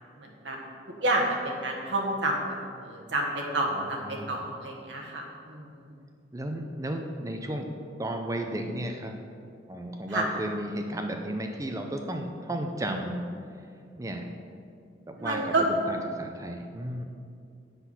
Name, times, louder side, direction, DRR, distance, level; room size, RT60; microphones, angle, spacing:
voice 1, 0.2-0.6 1.0-5.9 10.1-10.3 15.2-15.7, right 2 dB, 75° right, -1 dB, 1.4 m, -29 dB
voice 2, 3.7-4.5 6.3-7.7 8.0-9.1 9.7-13.2 14.0-14.3 15.1-17.0, right 1 dB, 20° right, 4 dB, 0.5 m, -34 dB
8.0 x 6.3 x 5.7 m, 2.4 s
head